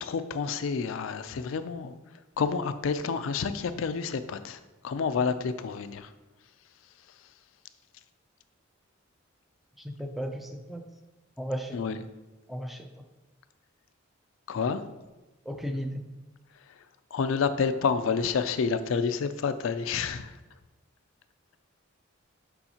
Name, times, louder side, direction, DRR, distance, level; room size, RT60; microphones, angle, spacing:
voice 1, 0.0-1.9 2.4-6.1 11.7-12.0 14.5-14.8 17.1-20.3, left 5 dB, 70° left, 11 dB, 0.4 m, -29 dB
voice 2, 9.8-10.8 11.4-11.8 12.5-12.9 15.5-16.0, equal, ahead, 4 dB, 0.4 m, -35 dB
7.0 x 5.6 x 2.8 m, 1.1 s
head